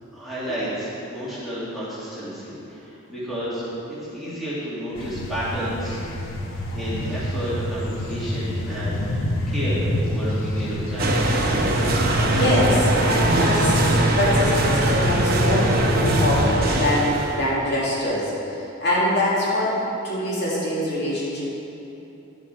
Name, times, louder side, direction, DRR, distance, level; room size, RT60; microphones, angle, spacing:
voice 1, 0.1-6.0 6.7-11.2, equal, ahead, -11 dB, 2.2 m, -31 dB
sound 1, 4.9-16.4, left 1 dB, 80° left, 1.0 m, -27 dB
sound 2, 11.0-17.5, right 2 dB, 45° right, 0.8 m, -22 dB
voice 2, 12.3-19.8 20.0-21.4, left 1 dB, 55° left, -7 dB, 2.2 m, -24 dB
10.5 x 7.2 x 4.3 m, 2.9 s
head